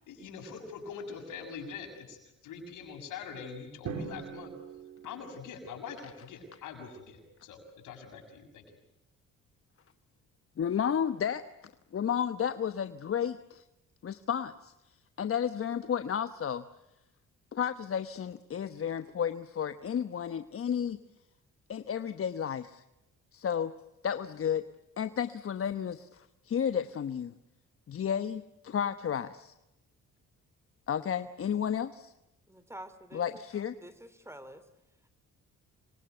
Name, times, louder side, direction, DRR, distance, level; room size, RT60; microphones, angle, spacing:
voice 1, 0.1-4.5 5.0-8.6, left 5 dB, 85° left, 5 dB, 6.9 m, -44 dB
Drum, 3.9-6.0, right 6 dB, 70° right, 4.0 m, -42 dB
voice 2, 10.6-11.4 11.9-13.6 14.0-14.7 15.2-16.6 17.5-21.0 21.7-22.8 23.3-23.7 24.0-24.7 25.0-27.3 27.9-29.5 30.9-32.1 33.1-33.8, left 8 dB, 45° left, 11 dB, 1.2 m, -32 dB
voice 3, 32.5-33.4 33.8-34.6, right 1 dB, 10° right, 13 dB, 3.0 m, -48 dB
27.0 x 24.0 x 8.0 m, 0.91 s
cardioid pair, 90°, 30 cm